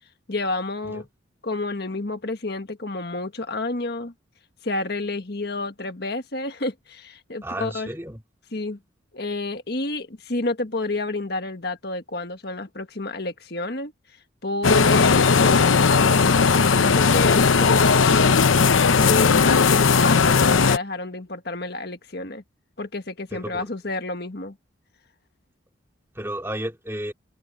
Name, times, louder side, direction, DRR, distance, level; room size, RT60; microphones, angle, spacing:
voice 1, 0.3-1.1 1.4-4.1 4.6-7.9 8.5-8.8 9.1-13.9 14.4-15.6 16.8-18.1 18.9-22.4 22.8-24.6, left 2 dB, 55° left, 1.7 m, -30 dB
voice 2, 7.4-8.2 23.3-23.6 26.2-27.1, right 1 dB, 15° right, 2.5 m, -33 dB
sound 1, 14.6-20.8, left 5 dB, 85° left, 0.8 m, -17 dB
head